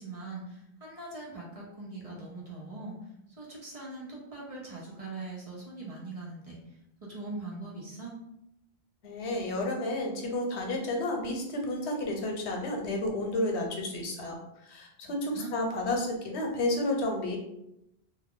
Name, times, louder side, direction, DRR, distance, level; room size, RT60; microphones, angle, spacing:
voice 1, 0.0-3.0 3.4-6.6 7.0-8.2 15.0-15.6, right 3 dB, 40° right, -4 dB, 0.6 m, -41 dB
voice 2, 9.0-14.4 14.7-17.4, left 1 dB, 90° left, 2 dB, 0.9 m, -31 dB
2.4 x 2.2 x 3.5 m, 0.83 s
omnidirectional pair, 1.1 m